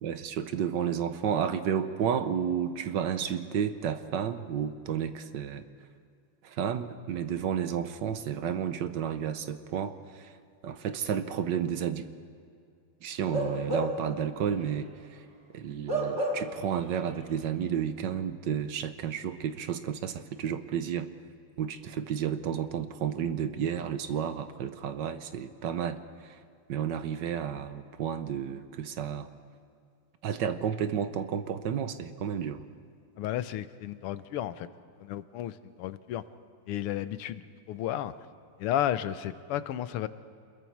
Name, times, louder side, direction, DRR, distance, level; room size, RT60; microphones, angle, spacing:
voice 1, 0.0-5.6 6.4-10.3 10.6-12.0 13.0-15.3 15.5-21.1 21.6-26.4 26.7-29.3 30.2-32.6, right 8 dB, 65° right, 10 dB, 1.3 m, -32 dB
Bark / Livestock farm animals working animals, 13.2-14.2 14.6-14.7 15.9-16.7 17.0-17.2, right 1 dB, 35° right, 2.1 m, -31 dB
voice 2, 33.2-34.7 35.0-36.2 36.7-38.1 38.6-40.1, left 12 dB, 85° left, 13 dB, 1.7 m, -33 dB
27.5 x 21.5 x 4.6 m, 2.3 s
omnidirectional pair, 2.4 m